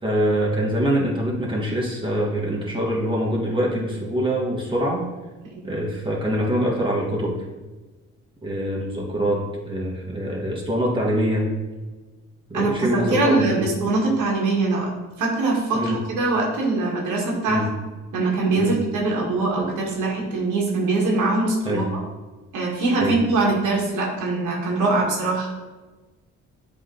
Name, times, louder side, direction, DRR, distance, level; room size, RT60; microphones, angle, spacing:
voice 1, 0.0-5.0 5.6-7.3 8.4-11.5 12.5-13.7 15.7-16.0 17.5-17.7 18.6-18.8 21.6-21.8 23.0-23.2, equal, 15° right, -3 dB, 1.8 m, -24 dB
voice 2, 12.5-14.9 15.2-17.6 18.1-21.8 22.5-25.5, right 3 dB, 85° right, -2 dB, 1.8 m, -22 dB
7.9 x 3.8 x 3.9 m, 1.2 s
cardioid pair, 90°, 30 cm